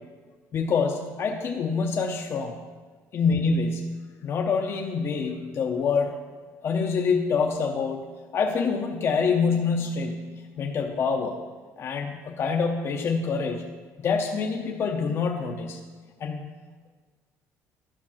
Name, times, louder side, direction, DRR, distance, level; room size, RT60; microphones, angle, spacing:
voice 1, 0.5-2.6 3.1-3.9 4.2-6.2 6.6-8.0 8.3-11.4 11.8-13.6 14.0-15.8 16.2-16.4, left 5 dB, 40° left, 2 dB, 0.7 m, -26 dB
11.0 x 5.2 x 6.0 m, 1.4 s
cardioid pair, 140°, 6 cm